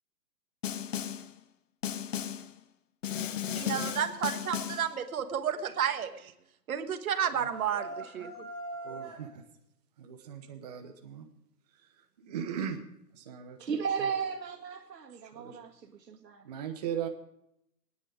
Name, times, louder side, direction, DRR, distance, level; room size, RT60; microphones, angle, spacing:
Snare drum, 0.6-1.3 1.8-2.5 3.0-4.9, left 9 dB, 50° left, 1.0 m, -35 dB
voice 1, 3.5-6.3 6.7-8.5, right 8 dB, 60° right, 1.4 m, -32 dB
sound 1, 7.1-9.3, right 2 dB, 5° right, 3.1 m, -42 dB
voice 2, 8.8-9.4 10.0-11.3 11.7-12.8 13.1-13.6 15.3-15.6 16.4-17.1, right 8 dB, 25° right, 0.9 m, -38 dB
voice 3, 13.6-16.5, right 6 dB, 90° right, 2.1 m, -35 dB
18.5 x 9.6 x 4.9 m
hypercardioid pair, 160°, 48 cm